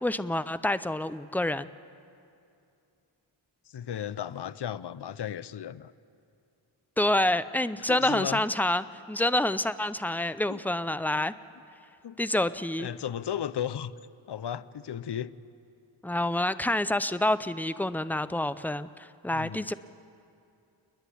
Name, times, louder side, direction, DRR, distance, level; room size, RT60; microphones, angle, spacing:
voice 1, 0.0-1.7 7.0-11.3 12.2-12.9 16.0-19.7, left 1 dB, 5° left, 14 dB, 0.5 m, -27 dB
voice 2, 3.7-5.9 7.9-8.4 10.5-10.6 12.0-12.2 12.8-13.9 14.3-15.3 19.3-19.7, left 9 dB, 55° left, 16 dB, 0.6 m, -35 dB
29.5 x 10.5 x 10.0 m, 2.6 s
wide cardioid pair, 70°, 48 cm